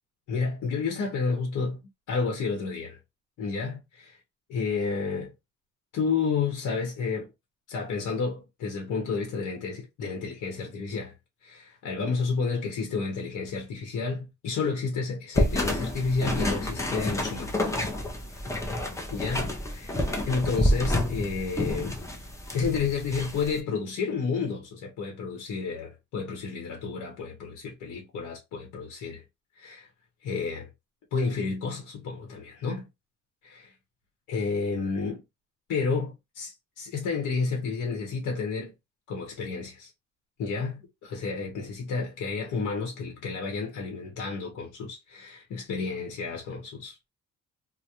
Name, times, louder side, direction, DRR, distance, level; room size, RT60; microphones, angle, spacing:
voice 1, 0.3-1.8 2.1-3.0 3.4-4.2 4.5-5.3 5.9-7.3 7.7-11.1 11.4-17.5 19.1-22.0 22.5-29.2 29.6-29.9 30.2-30.7 31.1-32.8 33.4-33.7 34.3-35.2 35.7-38.7 39.1-39.9 40.4-47.1, left 4 dB, 75° left, 0.9 m, -31 dB
sound 1, 15.3-23.6, left 1 dB, 10° left, 0.5 m, -29 dB
2.3 x 2.1 x 2.8 m
cardioid pair, 90°, 30 cm